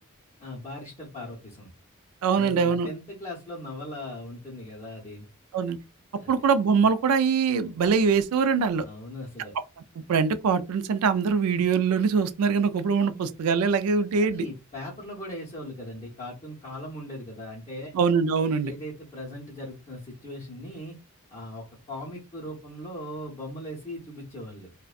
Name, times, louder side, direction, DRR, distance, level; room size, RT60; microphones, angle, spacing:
voice 1, 0.4-1.7 2.3-5.3 6.2-6.4 8.8-9.6 13.0-13.2 14.2-17.9 18.6-21.0 21.3-24.7, left 1 dB, 30° left, 0.7 m, -39 dB
voice 2, 2.2-2.9 5.5-5.8 6.3-8.8 10.1-14.5 17.9-18.7, right 5 dB, 90° right, 0.3 m, -23 dB
2.5 x 2.1 x 2.3 m
head